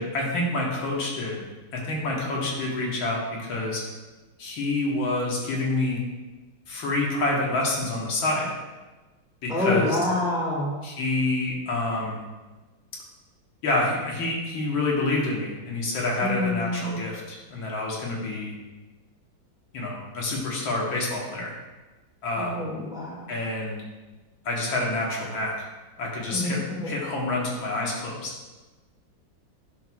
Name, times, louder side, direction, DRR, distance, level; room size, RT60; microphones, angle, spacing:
voice 1, 0.0-1.4 1.7-3.8 4.4-6.0 6.7-8.5 9.4-10.0 10.8-12.2 13.6-18.5 19.7-21.5 22.2-22.6 23.3-23.8 24.5-25.7 26.0-28.3, left 2 dB, 80° left, -3 dB, 2.1 m, -27 dB
voice 2, 9.5-10.7 16.2-17.0 22.4-23.3 26.3-26.9, left 2 dB, ahead, -5 dB, 1.6 m, -27 dB
10.0 x 6.1 x 2.3 m, 1.2 s
omnidirectional pair, 2.1 m